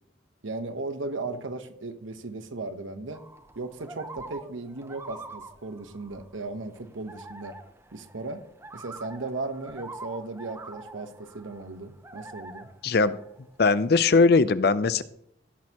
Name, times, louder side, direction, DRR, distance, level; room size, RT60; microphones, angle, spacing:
voice 1, 0.4-3.2 3.6-7.5 7.9-8.4 8.7-12.7, right 3 dB, 90° right, 9 dB, 1.0 m, -36 dB
canadian loons, 3.1-14.0, right 2 dB, 15° right, 0.6 m, -45 dB
voice 2, 12.8-13.2 13.6-15.0, left 4 dB, 55° left, 15 dB, 0.5 m, -20 dB
17.5 x 6.3 x 2.9 m, 0.73 s
head